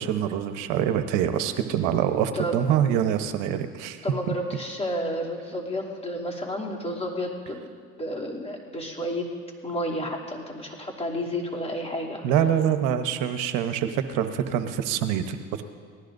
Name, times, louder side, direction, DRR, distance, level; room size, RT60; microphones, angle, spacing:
voice 1, 0.0-4.0 12.2-15.6, right 9 dB, 75° right, 8 dB, 1.1 m, -25 dB
voice 2, 4.0-7.7 8.0-9.3 9.6-12.3, equal, 20° left, -2 dB, 2.9 m, -31 dB
26.0 x 18.5 x 2.7 m, 2.1 s
supercardioid pair, 105°, 32 cm